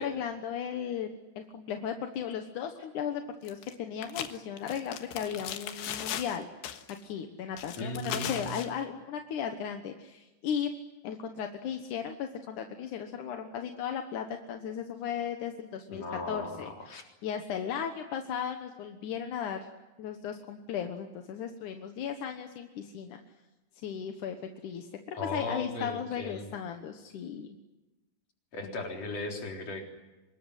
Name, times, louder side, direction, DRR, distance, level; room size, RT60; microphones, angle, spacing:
voice 1, 0.0-6.5 7.0-10.7 11.0-16.7 17.2-19.6 20.0-23.2 23.8-24.4 24.6-27.6 28.6-28.7, left 8 dB, 65° left, 5 dB, 2.3 m, -36 dB
sound 1, 3.5-3.8 4.0-6.4 6.6-7.0 7.6-8.7, left 10 dB, 85° left, 3.5 m, -37 dB
voice 2, 7.8-8.6 15.9-17.0 25.1-26.5 28.5-29.8, left 1 dB, 40° left, 2 dB, 4.7 m, -37 dB
26.0 x 21.0 x 9.9 m, 1.1 s
omnidirectional pair, 4.8 m